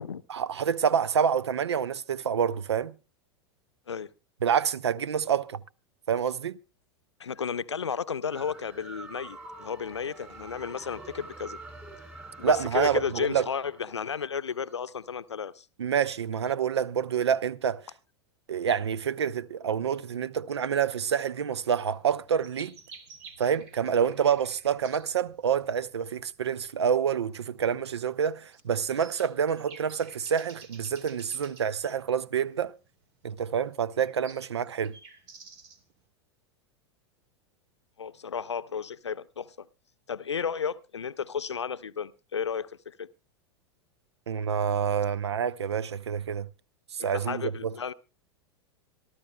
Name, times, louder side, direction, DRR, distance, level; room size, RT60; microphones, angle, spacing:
voice 1, 0.3-2.9 4.4-5.6 6.1-6.6 12.4-13.5 15.8-17.8 18.5-22.8 23.4-32.7 33.2-35.0 44.3-46.5 46.9-47.7, right 7 dB, 70° right, 0.6 m, -27 dB
voice 2, 7.2-11.6 12.4-15.7 38.0-39.7 40.1-43.1 47.0-47.9, left 7 dB, 80° left, 0.6 m, -33 dB
sound 1, 8.3-14.9, right 2 dB, 10° right, 5.6 m, -46 dB
sound 2, 21.9-36.0, right 4 dB, 45° right, 2.0 m, -52 dB
26.5 x 13.0 x 2.2 m
figure-of-eight pair, 90°, 14 cm